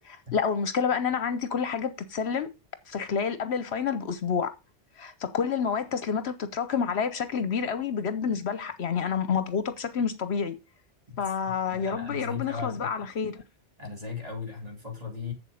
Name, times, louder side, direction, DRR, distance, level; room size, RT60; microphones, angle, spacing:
voice 1, 0.0-2.5 2.9-4.5 5.0-10.6 11.2-13.4, left 6 dB, 70° left, 1.0 m, -29 dB
voice 2, 11.1-12.9 13.8-15.3, left 5 dB, 35° right, 3.1 m, -37 dB
7.5 x 7.3 x 5.0 m
omnidirectional pair, 1.2 m